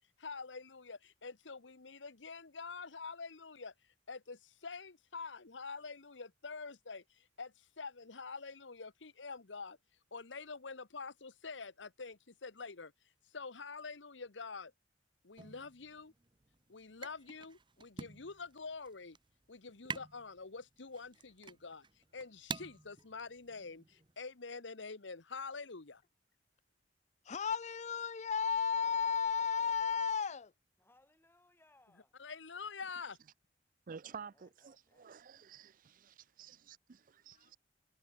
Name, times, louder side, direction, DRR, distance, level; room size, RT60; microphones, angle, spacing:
voice 1, 0.0-9.8 10.1-12.9 13.2-14.7 15.2-16.1 16.7-19.2 19.5-26.0 32.2-33.2, left 4 dB, 85° left, 1.3 m, -47 dB
sound 1, 15.4-24.2, right 4 dB, 25° right, 1.2 m, -49 dB
voice 2, 27.2-30.5, left 6 dB, 40° left, 0.5 m, -33 dB
voice 3, 30.8-32.2 34.1-35.1, left 2 dB, 15° left, 7.6 m, -68 dB
voice 4, 33.9-37.6, right 6 dB, 45° right, 0.5 m, -51 dB
head